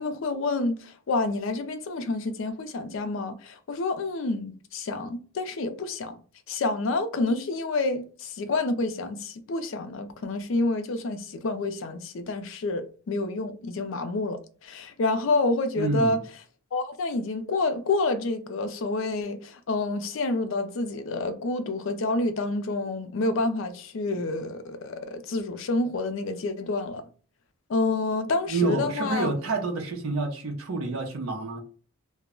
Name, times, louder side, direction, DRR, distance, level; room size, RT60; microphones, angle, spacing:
voice 1, 0.0-6.2 6.5-16.2 16.7-27.1 27.7-29.3, left 2 dB, 60° left, 0.4 m, -28 dB
voice 2, 15.8-16.2 28.5-31.6, right 3 dB, 70° right, 0.6 m, -28 dB
2.2 x 2.0 x 3.6 m
head